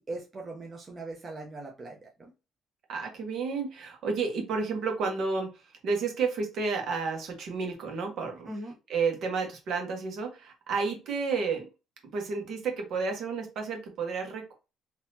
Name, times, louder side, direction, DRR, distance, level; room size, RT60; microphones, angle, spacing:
voice 1, 0.0-2.3 8.5-8.7, right 2 dB, 30° right, 0.8 m, -40 dB
voice 2, 2.9-8.5 8.9-11.7 12.1-14.5, right 4 dB, 60° right, 1.4 m, -31 dB
4.0 x 2.9 x 2.8 m
cardioid pair, 125°, 0 cm